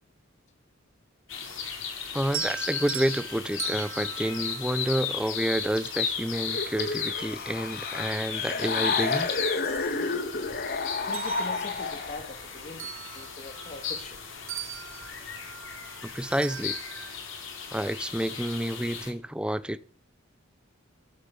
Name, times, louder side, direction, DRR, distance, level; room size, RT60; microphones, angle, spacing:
sound 1, 1.3-19.1, left 6 dB, 75° left, 4.9 m, -36 dB
voice 1, 2.1-9.3 16.0-16.8 17.7-19.8, right 1 dB, 5° right, 0.8 m, -29 dB
sound 2, 2.2-5.5 7.2-7.3 7.8-9.0 9.4-10.6 11.0-14.2 14.5-17.1, right 9 dB, 80° right, 1.7 m, -41 dB
sound 3, 6.5-12.3, left 4 dB, 55° left, 1.8 m, -31 dB
voice 2, 11.1-14.2 17.4-17.6, left 2 dB, 40° left, 2.5 m, -43 dB
16.0 x 9.2 x 8.1 m
head